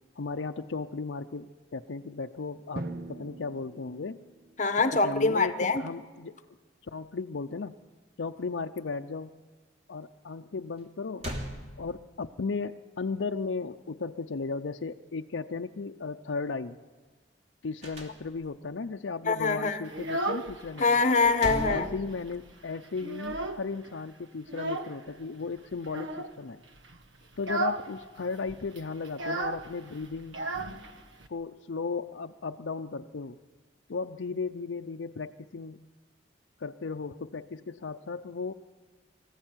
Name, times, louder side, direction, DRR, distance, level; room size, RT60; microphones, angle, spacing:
voice 1, 0.2-4.2 4.9-6.4 6.8-7.8 8.2-9.4 9.9-11.3 11.8-16.8 17.6-20.9 21.7-26.6 27.4-30.4 31.3-33.4 33.9-35.8 36.6-38.5, left 4 dB, 80° left, 0.6 m, -35 dB
Drum, 2.8-4.7, right 2 dB, 50° right, 1.1 m, -41 dB
voice 2, 4.6-5.8 19.3-19.8 20.8-21.9, left 4 dB, 40° left, 1.2 m, -24 dB
sound 1, 10.8-10.9 11.2-12.3 17.8-18.7 21.0-22.6, equal, 35° right, 3.1 m, -38 dB
Child speech kid speaking, 19.8-20.9 21.2-22.0 22.3-22.4 22.7-23.8 24.5-25.0 25.8-26.3 26.8-27.0 27.3-27.9 28.1-28.2 28.5-31.3, right 2 dB, 85° right, 1.3 m, -34 dB
24.5 x 15.0 x 9.0 m
head